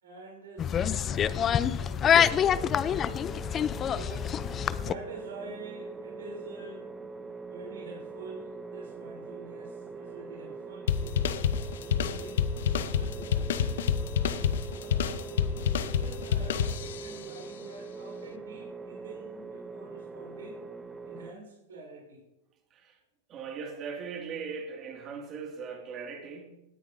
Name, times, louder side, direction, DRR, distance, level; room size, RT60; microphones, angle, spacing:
voice 1, 0.0-3.1 3.8-4.3 4.8-6.9 7.5-11.4 11.8-13.9 14.7-20.6 21.0-22.2, right 2 dB, 90° right, 3.2 m, -47 dB
sound 1, 0.6-4.9, left 9 dB, 30° left, 0.4 m, -26 dB
sound 2, 2.2-21.3, right 4 dB, 15° right, 0.6 m, -43 dB
sound 3, 10.9-17.2, left 8 dB, 80° left, 0.7 m, -28 dB
voice 2, 23.3-26.5, right 5 dB, 35° right, 2.1 m, -39 dB
17.5 x 9.4 x 2.7 m
hypercardioid pair, 120°, 0 cm